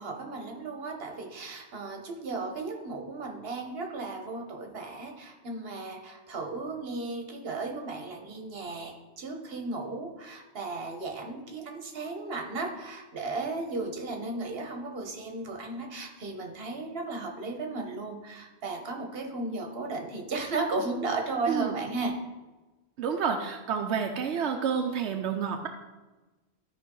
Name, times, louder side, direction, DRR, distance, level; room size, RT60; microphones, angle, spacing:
voice 1, 0.0-22.1, right 3 dB, 65° right, 3 dB, 1.3 m, -35 dB
voice 2, 23.0-25.7, right 6 dB, 90° right, 4 dB, 0.9 m, -29 dB
13.0 x 5.0 x 3.8 m, 1.2 s
omnidirectional pair, 1.1 m